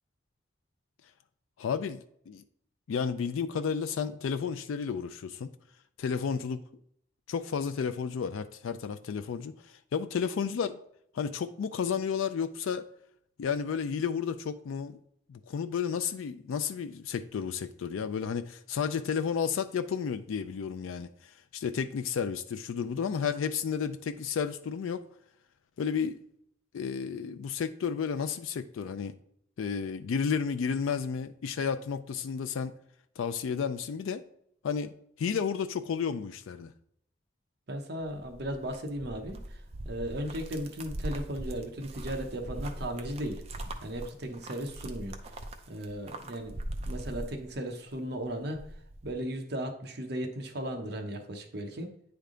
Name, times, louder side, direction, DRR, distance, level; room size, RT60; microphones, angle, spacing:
voice 1, 1.6-2.4 2.9-5.5 6.0-6.7 7.3-10.8 11.1-12.9 13.4-15.0 15.3-25.0 25.8-26.2 26.7-29.2 29.6-32.7 33.2-34.2 34.6-36.7, left 6 dB, 85° left, 0.3 m, -32 dB
voice 2, 37.7-43.4 43.8-45.2 45.7-46.6 46.9-48.6 49.0-51.9, right 1 dB, 55° right, 0.8 m, -36 dB
sound 1, 38.0-47.9 48.3-49.2, right 1 dB, 30° right, 0.5 m, -41 dB
9.1 x 3.4 x 3.7 m
head